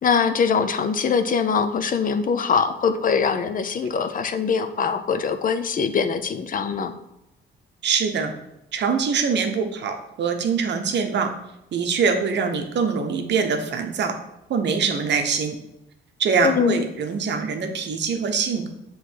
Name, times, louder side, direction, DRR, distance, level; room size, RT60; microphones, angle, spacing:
voice 1, 0.0-6.9 16.4-16.8, left 6 dB, 45° left, 9 dB, 0.5 m, -22 dB
voice 2, 7.8-8.3 8.7-11.3 11.7-14.1 14.5-15.6 16.2-18.7, right 5 dB, 60° right, 6 dB, 0.9 m, -23 dB
6.8 x 3.1 x 4.5 m, 0.88 s
cardioid pair, 90°, 20 cm